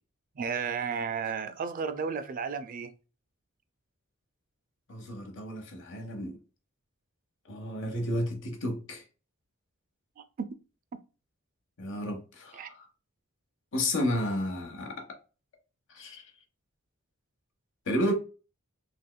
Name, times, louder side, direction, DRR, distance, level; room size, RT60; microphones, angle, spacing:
voice 1, 0.4-2.9 10.2-10.5 12.5-12.7, right 6 dB, 40° right, 0.3 m, -33 dB
voice 2, 4.9-6.4 7.5-9.0 11.8-12.8 13.7-15.1 15.9-16.3 17.9-18.1, left 1 dB, 60° left, 0.8 m, -32 dB
3.4 x 3.0 x 2.2 m
head